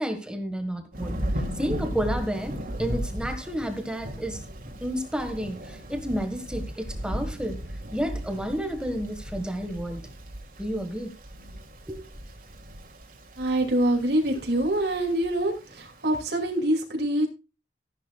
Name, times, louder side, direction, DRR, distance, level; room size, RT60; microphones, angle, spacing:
voice 1, 0.0-4.4 4.8-7.6 7.9-10.0 10.6-11.1 11.9-12.1, equal, 5° right, 1.6 m, -31 dB
Thunder / Rain, 0.9-16.5, equal, 55° right, 2.7 m, -36 dB
voice 2, 13.4-17.3, right 1 dB, 70° right, 2.6 m, -25 dB
14.5 x 11.0 x 2.4 m
head